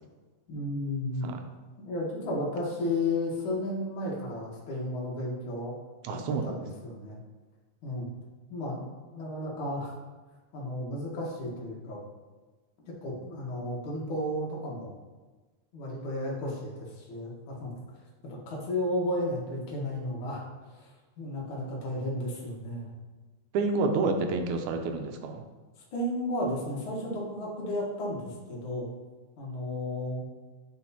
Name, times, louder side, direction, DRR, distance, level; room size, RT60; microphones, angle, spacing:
voice 1, 0.5-1.3 1.9-5.8 6.1-7.2 7.8-8.1 8.5-8.8 9.1-9.9 10.5-12.0 12.9-14.9 15.7-18.0 18.2-22.9 25.9-28.9 29.4-30.2, left 1 dB, 55° left, -3 dB, 1.7 m, -33 dB
voice 2, 6.0-6.6 23.5-25.4, right 3 dB, 85° right, 5 dB, 2.0 m, -29 dB
8.8 x 4.2 x 2.8 m, 1.3 s
omnidirectional pair, 3.4 m